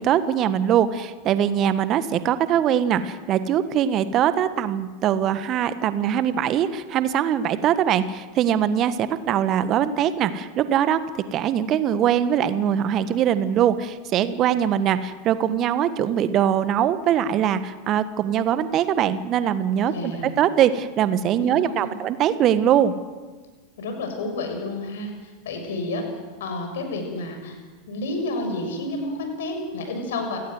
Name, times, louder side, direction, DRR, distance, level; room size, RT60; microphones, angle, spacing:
voice 1, 0.0-11.0 11.3-22.9, right 9 dB, 40° right, 13 dB, 1.5 m, -22 dB
voice 2, 19.9-20.3 21.4-22.0 23.8-26.0 26.4-27.6 27.9-30.4, left 2 dB, 65° left, 5 dB, 6.7 m, -30 dB
29.0 x 17.5 x 7.8 m, 1.4 s
figure-of-eight pair, 85°, 0 cm